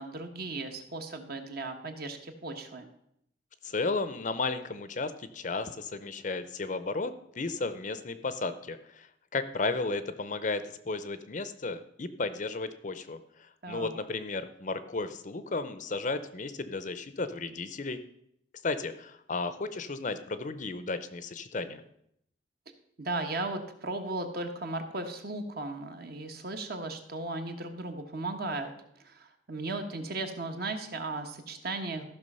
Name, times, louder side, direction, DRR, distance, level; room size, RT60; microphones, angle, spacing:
voice 1, 0.0-2.9 13.6-13.9 23.0-28.7 29.0-32.1, right 2 dB, 50° right, 6 dB, 1.2 m, -36 dB
voice 2, 3.6-9.1 9.3-13.2 13.7-18.0 18.6-21.8, left 3 dB, 40° left, 12 dB, 0.6 m, -34 dB
14.0 x 6.0 x 5.4 m, 0.75 s
head